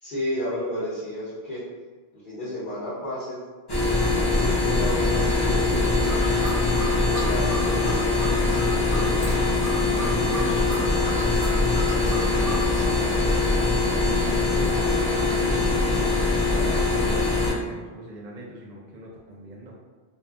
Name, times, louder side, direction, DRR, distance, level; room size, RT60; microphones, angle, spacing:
voice 1, 0.0-1.6 2.1-3.4 4.3-6.0 7.0-9.3, equal, 50° left, -12 dB, 1.0 m, -32 dB
sound 1, 3.7-17.5, left 3 dB, 30° left, 0.6 m, -22 dB
sound 2, 5.9-12.8, left 1 dB, 75° left, 1.3 m, -36 dB
voice 2, 9.7-13.2 14.0-19.7, right 1 dB, 55° right, -3 dB, 0.5 m, -40 dB
2.7 x 2.5 x 2.4 m, 1.4 s
omnidirectional pair, 1.1 m